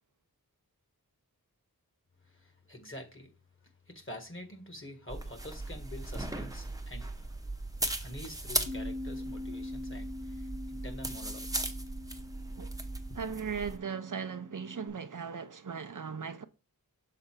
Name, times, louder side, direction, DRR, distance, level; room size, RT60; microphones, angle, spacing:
voice 1, 2.3-3.3 3.9-7.6 8.0-11.8, left 1 dB, 35° left, 1.6 m, -47 dB
sound 1, 5.1-13.8, right 2 dB, 10° right, 0.8 m, -38 dB
Bass guitar, 8.6-14.9, left 2 dB, 55° left, 3.3 m, -44 dB
voice 2, 13.1-16.4, right 6 dB, 60° right, 0.6 m, -38 dB
6.8 x 3.9 x 4.5 m
wide cardioid pair, 55°, 36 cm